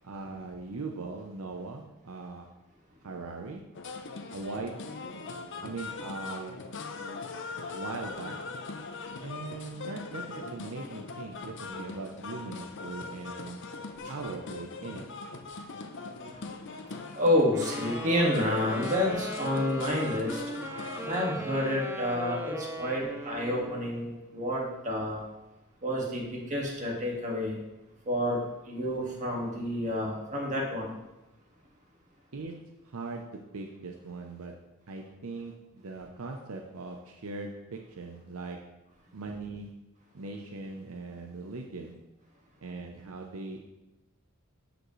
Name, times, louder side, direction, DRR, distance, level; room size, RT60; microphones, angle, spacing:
voice 1, 0.0-2.5 3.0-3.6 4.3-4.9 5.6-6.7 7.7-8.5 9.2-13.6 14.1-15.1 32.3-38.8 39.1-39.7 40.1-42.0 42.6-43.6, right 3 dB, 70° right, 2 dB, 0.7 m, -40 dB
sound 1, 3.7-21.2, left 4 dB, 55° left, 0.7 m, -40 dB
voice 2, 17.1-20.4 21.1-25.2 25.8-27.6 28.1-30.9, left 1 dB, 35° right, -2 dB, 1.8 m, -29 dB
Wind instrument woodwind instrument, 17.5-24.0, equal, 10° right, 0.6 m, -39 dB
12.5 x 5.2 x 3.1 m, 0.96 s
head